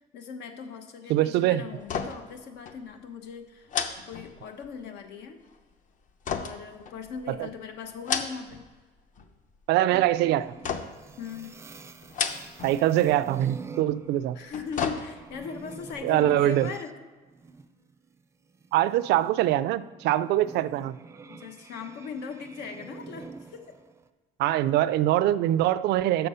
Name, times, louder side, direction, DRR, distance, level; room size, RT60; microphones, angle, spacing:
voice 1, 0.1-3.7 4.1-5.4 6.3-8.7 11.2-11.6 14.3-16.9 21.3-23.8, left 6 dB, 85° left, 6 dB, 1.1 m, -39 dB
voice 2, 1.1-1.6 7.3-7.5 9.7-10.5 12.6-14.4 16.0-16.7 18.7-20.9 24.4-26.3, right 13 dB, 80° right, 16 dB, 0.4 m, -23 dB
sound 1, 1.8-2.4 2.7-2.8 3.7-4.8 6.2-7.4 7.9-8.7 9.0-9.6 10.6-11.1 12.0-12.8 13.1-13.2 14.3-15.5 15.9-16.0, left 6 dB, 50° left, 0.8 m, -33 dB
sound 2, 9.9-16.9 17.2-24.1, right 4 dB, 15° right, 0.4 m, -46 dB
6.8 x 6.6 x 5.5 m, 1.3 s
cardioid pair, 110°, 17 cm